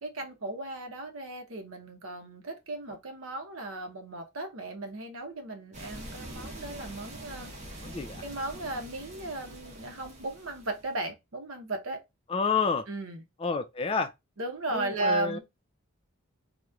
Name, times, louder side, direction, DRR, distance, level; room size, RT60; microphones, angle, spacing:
voice 1, 0.0-7.9 8.2-12.0 12.9-13.2 14.4-15.4, right 2 dB, 70° right, 0.8 m, -36 dB
sound 1, 5.7-11.0, right 1 dB, 30° right, 0.9 m, -44 dB
voice 2, 7.8-8.2 12.3-12.8 13.4-14.1 14.7-15.4, left 5 dB, 25° left, 0.3 m, -29 dB
3.0 x 2.1 x 3.6 m
head